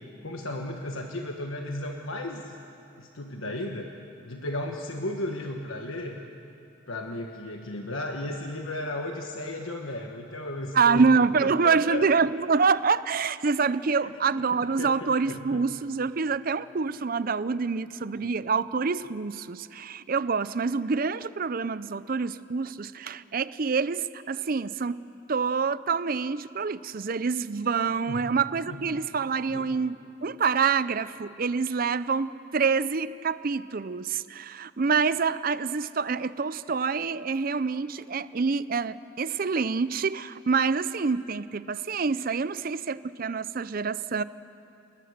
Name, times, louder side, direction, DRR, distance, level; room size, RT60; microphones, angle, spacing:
voice 1, 0.2-2.5 3.0-3.9 4.2-6.2 6.9-11.1 11.6-12.3 14.0-14.4 14.8-15.6 18.1-18.3 28.1-28.3 28.7-29.0 29.5-29.7, left 1 dB, 90° left, 3 dB, 1.4 m, -35 dB
voice 2, 10.7-25.0 25.3-30.0 30.2-44.2, right 5 dB, 45° right, 16 dB, 0.5 m, -26 dB
30.0 x 19.5 x 6.7 m, 2.7 s
head